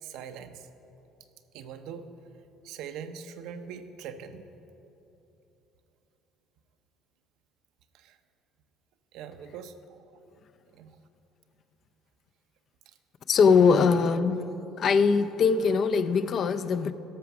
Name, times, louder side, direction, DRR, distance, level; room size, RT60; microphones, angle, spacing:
voice 1, 0.0-0.7 1.5-2.1 2.6-4.4 7.9-8.2 9.1-10.0 10.7-11.0 12.9-13.0 13.7-13.9, right 7 dB, 70° right, 0.6 m, -42 dB
voice 2, 13.3-14.4 14.8-16.9, left 5 dB, 45° left, 0.4 m, -21 dB
13.5 x 5.9 x 6.0 m
cardioid pair, 115°, 0 cm